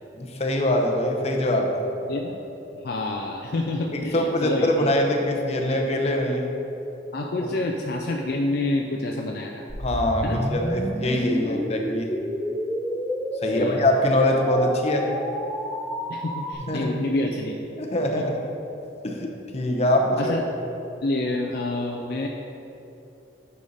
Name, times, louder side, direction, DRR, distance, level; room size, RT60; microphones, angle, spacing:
voice 1, 0.1-1.8 3.9-6.5 9.8-12.1 13.4-15.1 16.7-17.0 17.8-18.4 19.0-20.3, left 1 dB, 35° left, 1 dB, 0.8 m, -23 dB
voice 2, 2.8-4.9 7.1-9.6 10.2-10.5 11.5-11.6 13.4-13.8 16.1-17.5 18.2-18.3 20.2-20.4 21.0-22.3, left 2 dB, 60° left, 1 dB, 0.5 m, -28 dB
sound 1, 9.7-16.5, equal, ahead, 0.5 m, -29 dB
8.2 x 5.5 x 4.0 m, 3.0 s
head